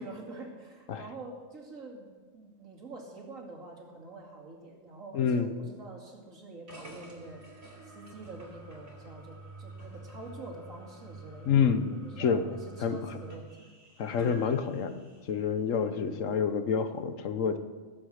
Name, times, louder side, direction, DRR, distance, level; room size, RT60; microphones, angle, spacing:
voice 1, 0.0-7.4 7.8-11.5 12.0-13.7 15.8-16.2, right 2 dB, 75° right, 0 dB, 2.9 m, -46 dB
voice 2, 5.1-5.5 11.5-12.4 12.8-13.0 14.0-15.0 15.3-17.6, left 6 dB, 70° left, 10 dB, 1.2 m, -28 dB
sound 1, 6.7-15.4, right 2 dB, 50° right, 3.7 m, -48 dB
18.0 x 7.8 x 6.4 m, 1.4 s
omnidirectional pair, 1.4 m